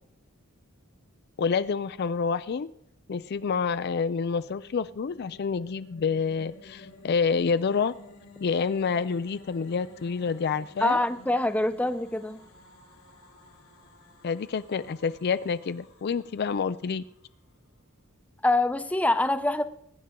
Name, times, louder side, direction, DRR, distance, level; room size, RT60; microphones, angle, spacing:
voice 1, 1.4-2.7 3.1-7.9 8.4-11.0 14.2-17.0, left 5 dB, 50° left, 15 dB, 0.4 m, -28 dB
sound 1, 4.2-17.3, left 2 dB, 90° left, 3.0 m, -53 dB
voice 2, 10.8-12.4 18.4-19.6, left 2 dB, 5° left, 10 dB, 0.6 m, -25 dB
20.5 x 9.9 x 3.8 m, 0.73 s
head